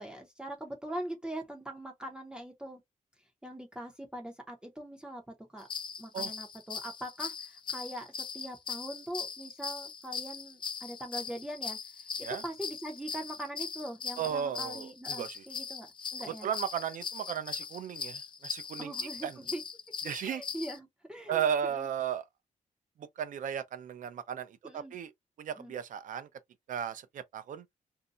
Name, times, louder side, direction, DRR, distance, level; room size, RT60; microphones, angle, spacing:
voice 1, 0.0-2.8 3.4-5.7 6.0-11.8 12.2-15.9 16.1-16.5 18.8-19.6 20.2-21.4 21.7-21.9 24.6-25.0 25.6-25.7, right 1 dB, 5° right, 0.8 m, -42 dB
sound 1, 5.6-20.8, left 6 dB, 35° left, 0.4 m, -40 dB
voice 2, 14.2-15.4 16.3-18.9 19.2-19.4 20.0-20.4 21.3-22.2 23.0-25.1 25.4-26.3 26.7-27.6, right 8 dB, 75° right, 0.6 m, -35 dB
2.7 x 2.1 x 3.7 m
wide cardioid pair, 160°, 13 cm